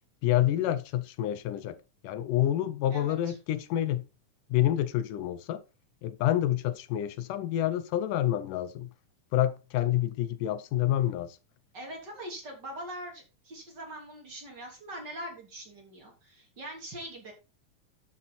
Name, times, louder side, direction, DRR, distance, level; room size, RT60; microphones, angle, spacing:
voice 1, 0.2-1.8 2.0-4.1 4.5-5.6 6.0-8.9 9.3-11.4, left 12 dB, 80° left, 2.4 m, -28 dB
voice 2, 2.9-3.3 11.7-17.3, right 1 dB, 30° right, 3.6 m, -42 dB
12.0 x 6.3 x 4.3 m
omnidirectional pair, 3.7 m